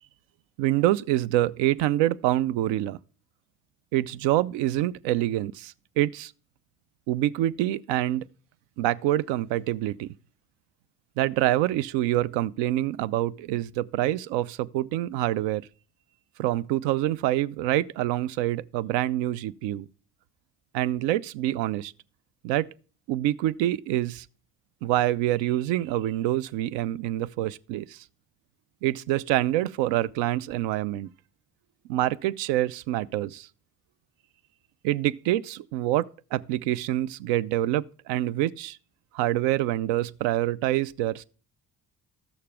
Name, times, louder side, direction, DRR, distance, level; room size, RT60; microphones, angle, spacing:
voice 1, 0.6-3.0 3.9-6.3 7.1-8.3 8.8-10.1 11.2-15.7 16.4-19.9 20.7-21.9 22.4-22.7 23.1-24.3 24.8-28.0 28.8-31.1 31.9-33.5 34.8-38.8 39.1-41.2, right 14 dB, 65° right, 0.5 m, -26 dB
13.0 x 6.6 x 3.4 m
hypercardioid pair, 40°, 49 cm